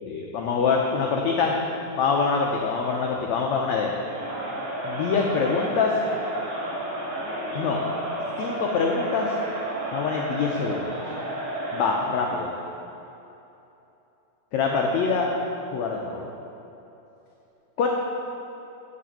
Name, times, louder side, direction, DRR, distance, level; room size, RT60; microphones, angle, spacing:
voice 1, 0.0-1.5 2.0-3.9 4.8-5.9 7.5-7.8 8.4-9.3 9.9-11.0 11.7-12.5 14.5-15.3 15.7-16.3 17.8-17.9, left 5 dB, 90° left, 0 dB, 1.5 m, -25 dB
Crowd, 4.0-12.1, right 1 dB, 45° right, 2.7 m, -31 dB
7.6 x 6.9 x 8.3 m, 3.0 s
omnidirectional pair, 4.1 m